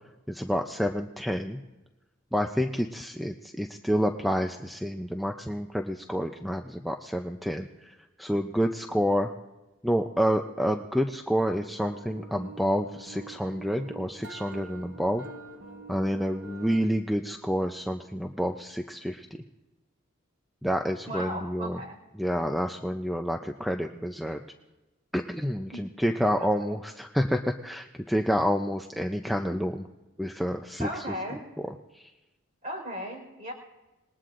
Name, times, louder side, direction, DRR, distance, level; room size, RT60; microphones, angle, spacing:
voice 1, 0.3-1.6 2.3-9.3 9.8-15.2 15.9-19.3 20.6-21.8 22.2-24.4 25.1-29.8 30.2-31.0 31.9-32.1, equal, ahead, 4 dB, 0.4 m, -28 dB
sound 1, 11.8-16.8, right 3 dB, 50° right, 1.2 m, -45 dB
voice 2, 21.1-22.0 25.7-25.8 26.4-26.5 30.8-31.4 32.6-33.5, equal, 35° right, 1 dB, 4.5 m, -36 dB
27.0 x 20.5 x 2.5 m, 1.1 s
head